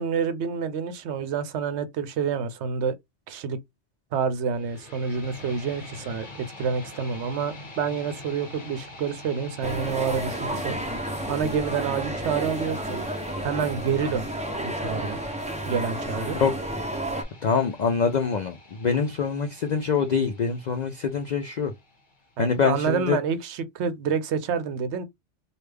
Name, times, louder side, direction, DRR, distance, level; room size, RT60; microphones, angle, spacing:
voice 1, 0.0-3.0 3.3-3.6 4.1-10.8 11.3-13.0 13.4-14.3 14.6-15.2 15.6-16.4 22.4-25.0, right 6 dB, 70° right, 0.8 m, -28 dB
sound 1, 4.5-22.5, left 2 dB, 40° left, 1.1 m, -45 dB
sound 2, 9.6-17.2, right 1 dB, 10° right, 0.3 m, -31 dB
voice 2, 17.4-21.7 22.4-23.2, left 5 dB, 65° left, 0.4 m, -25 dB
3.3 x 2.3 x 3.3 m
omnidirectional pair, 1.3 m